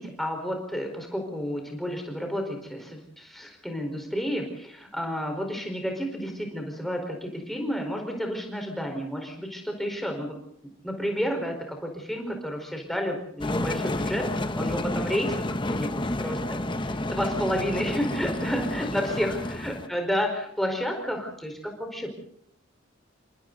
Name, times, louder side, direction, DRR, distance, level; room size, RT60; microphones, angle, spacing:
voice 1, 0.0-10.4 10.8-22.1, equal, ahead, 2 dB, 4.7 m, -31 dB
sound 1, 13.4-19.9, left 1 dB, 25° left, 1.1 m, -30 dB
29.0 x 26.5 x 4.1 m, 0.66 s
head